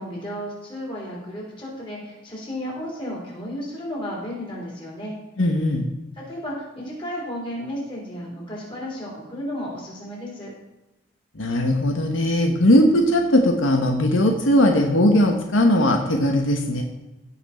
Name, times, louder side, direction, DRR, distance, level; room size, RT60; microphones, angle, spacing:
voice 1, 0.0-5.2 6.1-10.5, equal, 25° left, -4 dB, 4.1 m, -33 dB
voice 2, 5.4-5.9 11.4-16.8, left 1 dB, 80° left, 3 dB, 1.2 m, -19 dB
16.5 x 6.0 x 4.3 m, 0.98 s
head